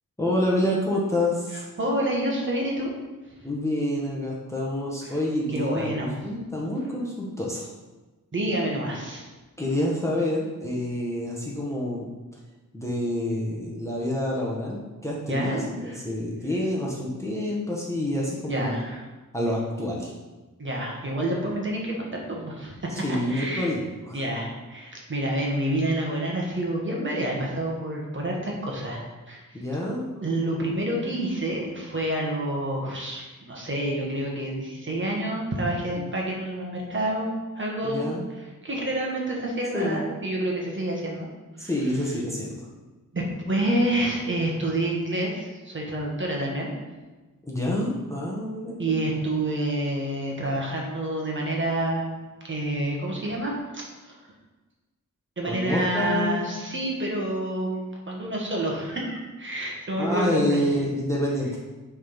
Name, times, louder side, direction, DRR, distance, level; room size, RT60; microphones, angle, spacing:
voice 1, 0.2-1.6 3.4-7.7 9.6-12.1 12.7-18.8 19.3-20.1 22.9-24.2 29.5-30.1 35.9-36.0 37.8-38.2 39.7-40.0 41.6-42.7 47.5-49.0 55.4-56.5 60.0-61.6, left 1 dB, 10° left, -4 dB, 1.1 m, -28 dB
voice 2, 1.8-2.9 5.0-5.2 5.5-6.1 8.3-9.3 15.3-16.0 18.5-19.0 20.6-23.7 24.1-29.6 30.2-38.1 38.6-41.3 41.6-41.7 43.1-46.7 48.8-54.3 55.4-60.6, right 1 dB, 35° right, -2 dB, 1.4 m, -28 dB
6.3 x 3.6 x 5.5 m, 1.2 s
wide cardioid pair, 145°, 33 cm